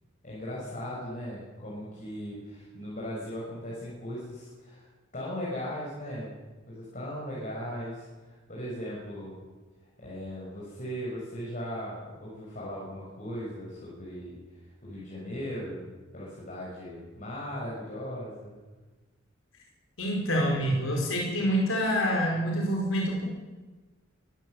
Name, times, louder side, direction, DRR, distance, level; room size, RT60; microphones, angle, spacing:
voice 1, 0.2-4.9 5.1-6.3 6.7-9.3 10.0-14.4 14.8-15.9 16.1-18.6, equal, 40° left, -5 dB, 6.9 m, -38 dB
voice 2, 20.0-23.2, equal, 85° left, 0 dB, 5.1 m, -26 dB
23.0 x 15.0 x 8.6 m, 1.3 s
head